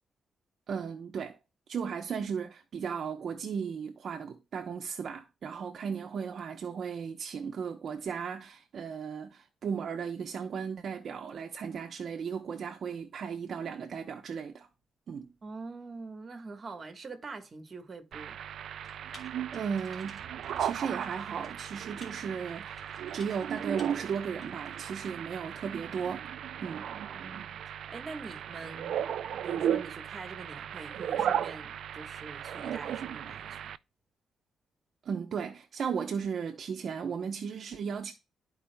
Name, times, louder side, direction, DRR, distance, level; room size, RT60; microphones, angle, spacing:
voice 1, 0.7-1.4 1.7-14.7 15.1-15.3 19.5-20.2 20.6-22.8 23.1-26.3 26.6-26.9 35.0-38.1, right 6 dB, 55° right, 0.8 m, -36 dB
voice 2, 15.4-18.4 26.9-29.0 29.4-33.7, right 3 dB, 35° right, 1.3 m, -44 dB
sound 1, 18.1-33.8, right 9 dB, 70° right, 0.3 m, -36 dB
Typing, 18.8-25.1, left 1 dB, 25° left, 2.9 m, -56 dB
13.0 x 4.8 x 2.2 m
cardioid pair, 135°, 0 cm